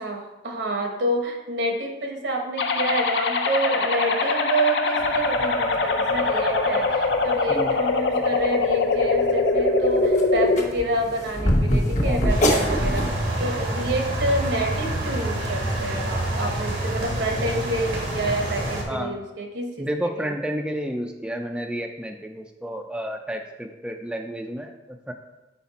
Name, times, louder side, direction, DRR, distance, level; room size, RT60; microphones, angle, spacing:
voice 1, 0.0-19.9 20.2-20.3, right 1 dB, 70° right, 3 dB, 1.0 m, -28 dB
sound 1, 2.6-10.6, left 3 dB, 70° left, 0.6 m, -22 dB
sound 2, 5.0-18.9, equal, 45° left, 1.1 m, -30 dB
voice 2, 12.0-12.3 18.9-19.2 19.8-25.1, equal, 5° right, 3 dB, 0.3 m, -31 dB
sound 3, 12.3-18.8, right 1 dB, 85° right, 1.3 m, -27 dB
5.8 x 4.7 x 4.1 m, 1.0 s
head